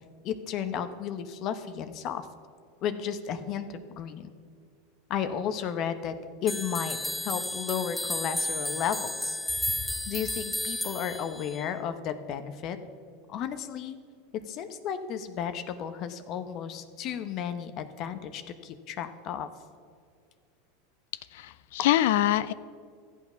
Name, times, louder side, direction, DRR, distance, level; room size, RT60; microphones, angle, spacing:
voice 1, 0.2-2.3 2.8-4.3 5.1-7.0 7.2-9.4 9.7-12.8 13.3-14.0 14.3-19.5, left 8 dB, 45° left, 10 dB, 0.9 m, -33 dB
sound 1, 6.5-11.7, left 1 dB, 5° left, 0.4 m, -33 dB
voice 2, 21.3-22.5, left 13 dB, 75° left, 16 dB, 0.4 m, -24 dB
13.5 x 8.4 x 5.7 m, 2.1 s
supercardioid pair, 115°, 0 cm